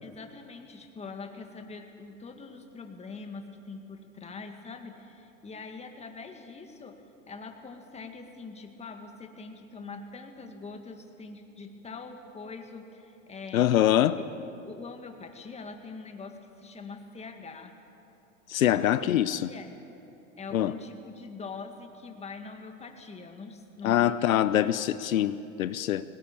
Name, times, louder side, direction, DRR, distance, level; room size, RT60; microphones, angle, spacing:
voice 1, 0.0-7.0 7.3-13.7 14.6-17.7 18.6-19.7 20.4-24.7, left 4 dB, 15° left, 4 dB, 2.0 m, -43 dB
voice 2, 13.5-14.2 18.5-19.5 20.5-20.7 23.8-26.0, left 12 dB, 85° left, 14 dB, 0.8 m, -24 dB
19.0 x 18.0 x 8.6 m, 2.8 s
hypercardioid pair, 110°, 40 cm